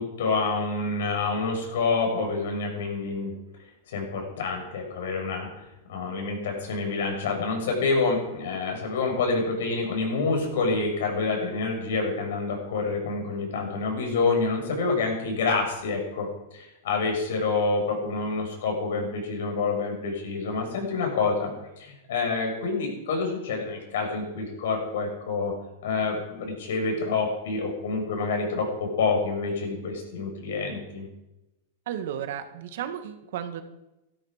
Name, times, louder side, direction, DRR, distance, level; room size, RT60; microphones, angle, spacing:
voice 1, 0.0-3.3 3.9-16.3 16.5-21.5 21.8-25.5 25.8-31.0, left 4 dB, 70° left, 2 dB, 6.6 m, -27 dB
voice 2, 31.8-33.6, right 9 dB, 65° right, 8 dB, 1.7 m, -33 dB
16.0 x 13.5 x 5.1 m, 0.95 s
supercardioid pair, 155°, 0 cm